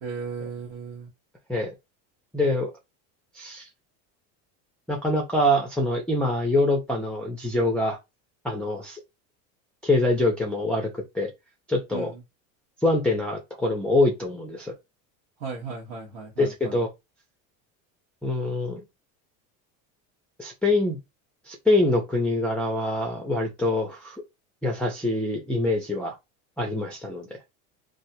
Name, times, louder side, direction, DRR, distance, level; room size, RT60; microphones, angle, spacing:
voice 1, 0.0-1.1 11.9-12.2 15.4-16.8, right 5 dB, 90° right, 1.2 m, -36 dB
voice 2, 2.3-2.7 3.3-3.6 4.9-8.0 8.4-9.0 9.8-11.3 11.7-12.1 12.8-14.7 16.4-16.9 18.2-18.8 20.4-21.0 21.5-24.2 24.6-26.2 26.6-27.3, left 2 dB, 5° left, 0.4 m, -24 dB
3.3 x 2.5 x 2.7 m
supercardioid pair, 130°, 39 cm